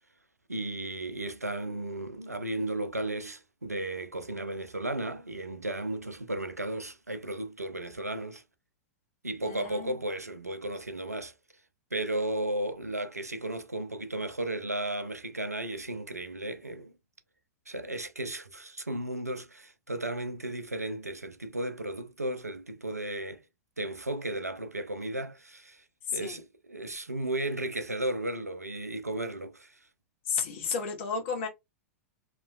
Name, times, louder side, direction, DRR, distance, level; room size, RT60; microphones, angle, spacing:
voice 1, 0.5-8.4 9.2-11.3 11.9-16.9 17.7-23.4 23.8-25.8 26.1-29.7, right 1 dB, 85° right, 0.6 m, -34 dB
voice 2, 9.4-10.0 26.1-26.4 30.3-31.5, left 6 dB, 50° left, 1.2 m, -32 dB
3.1 x 2.9 x 2.3 m
figure-of-eight pair, 95°, 8 cm